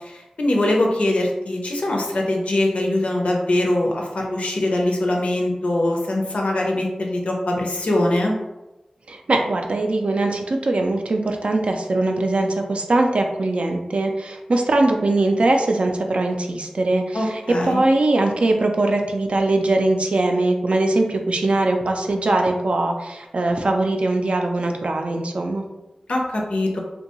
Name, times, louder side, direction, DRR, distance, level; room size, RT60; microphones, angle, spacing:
voice 1, 0.0-8.3 17.1-17.8 26.1-26.8, left 1 dB, 75° left, 0 dB, 0.5 m, -22 dB
voice 2, 9.1-25.6, right 2 dB, 65° right, 3 dB, 0.3 m, -21 dB
2.6 x 2.2 x 2.9 m, 1.0 s
wide cardioid pair, 75°, 2 cm